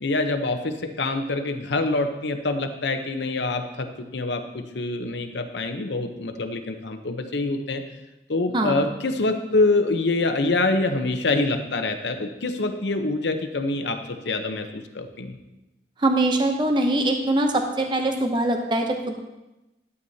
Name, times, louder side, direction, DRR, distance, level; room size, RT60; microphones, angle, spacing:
voice 1, 0.0-7.8 8.3-14.0 14.2-15.4, left 2 dB, 80° left, 6 dB, 0.8 m, -25 dB
voice 2, 8.5-8.9 16.0-19.2, right 1 dB, 25° right, 4 dB, 0.7 m, -22 dB
12.5 x 8.0 x 2.8 m, 1.0 s
head